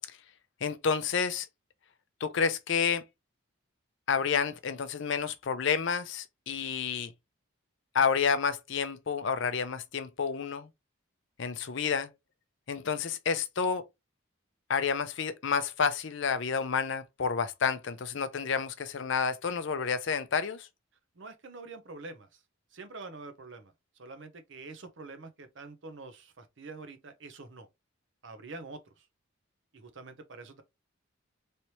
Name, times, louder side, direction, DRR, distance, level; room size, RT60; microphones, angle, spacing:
voice 1, 0.6-1.5 2.2-3.0 4.1-7.1 7.9-10.7 11.4-12.1 12.7-13.8 14.7-20.7, left 6 dB, 60° left, 0.5 m, -30 dB
voice 2, 21.2-22.4 22.7-27.7 28.2-29.1 29.7-30.6, right 3 dB, 60° right, 0.7 m, -46 dB
3.2 x 2.9 x 2.8 m
head